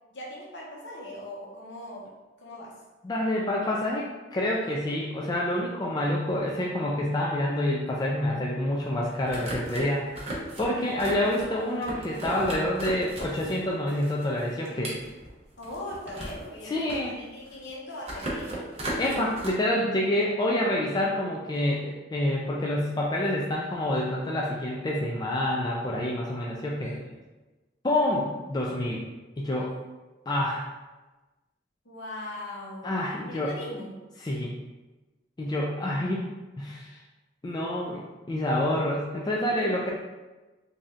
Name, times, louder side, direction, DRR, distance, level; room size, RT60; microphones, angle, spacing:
voice 1, 0.1-2.1 2.4-2.8 15.6-18.6 26.7-27.1 31.8-34.0, left 1 dB, 70° left, -4 dB, 1.0 m, -40 dB
voice 2, 3.0-10.3 10.6-14.9 16.6-17.2 19.0-26.9 27.8-29.0 29.4-29.7 30.3-30.7 32.8-33.5 34.2-34.5 35.4-36.3 36.6-37.0 37.4-39.9, left 1 dB, 20° left, -3 dB, 0.3 m, -27 dB
sound 1, 9.0-13.6 13.9-16.4 16.8-17.7 18.0-19.5, right 1 dB, 35° right, 0.9 m, -36 dB
3.2 x 2.7 x 3.7 m, 1.1 s
head